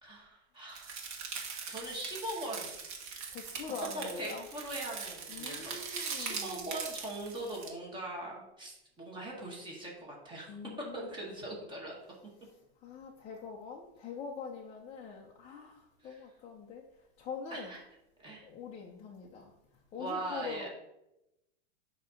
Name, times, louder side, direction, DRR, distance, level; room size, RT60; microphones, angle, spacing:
voice 1, 0.0-1.1 1.7-2.7 3.9-10.6 10.9-11.9 16.0-16.2 17.5-17.8 18.2-18.5 20.0-20.7, right 1 dB, 15° right, -3 dB, 1.4 m, -41 dB
sound 1, 0.7-7.7, right 5 dB, 40° right, 1.6 m, -41 dB
voice 2, 3.3-4.5 5.3-6.7 10.5-11.4 12.8-16.9 17.2-17.8 18.4-19.5 19.9-20.7, left 5 dB, 20° left, 0 dB, 0.5 m, -44 dB
7.3 x 2.9 x 5.6 m, 0.91 s
supercardioid pair, 155°, 34 cm